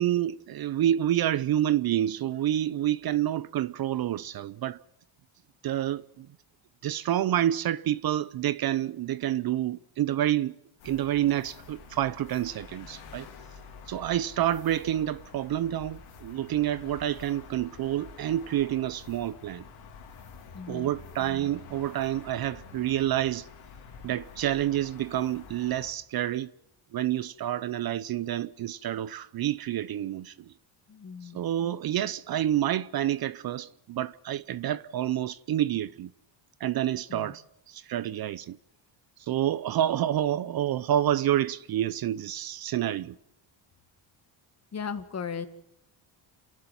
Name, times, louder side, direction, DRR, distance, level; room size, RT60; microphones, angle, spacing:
voice 1, 0.0-4.8 5.6-6.3 6.8-10.6 10.8-13.3 13.9-19.6 20.7-23.5 24.0-26.5 26.9-30.5 31.2-36.1 36.6-38.6 39.2-43.2, right 12 dB, 50° right, 0.7 m, -28 dB
sound 1, 10.8-25.9, left 5 dB, 85° left, 4.1 m, -48 dB
voice 2, 20.5-20.9 30.9-31.4 37.1-37.3 44.7-45.5, left 6 dB, 30° left, 2.0 m, -36 dB
29.5 x 11.5 x 9.3 m
cardioid pair, 120°, 48 cm